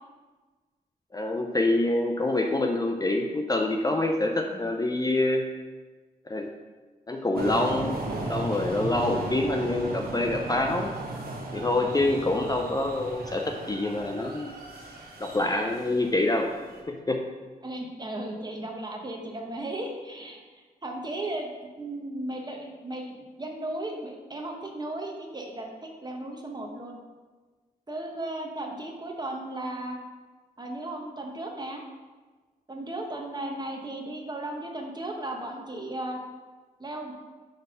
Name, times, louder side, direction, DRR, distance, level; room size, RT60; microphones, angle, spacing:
voice 1, 1.1-5.4 6.3-6.5 7.1-8.0 8.3-10.9 11.5-14.5 15.2-16.5 16.9-17.2, left 2 dB, 25° left, 2 dB, 0.5 m, -26 dB
sound 1, 7.3-16.8, right 2 dB, 70° right, 1.1 m, -36 dB
voice 2, 9.3-9.6 17.6-27.0 27.9-30.0 30.6-31.8 32.7-36.2 36.8-37.1, right 1 dB, 25° right, 1 dB, 1.1 m, -36 dB
6.5 x 3.5 x 5.5 m, 1.3 s
cardioid pair, 75°, 16 cm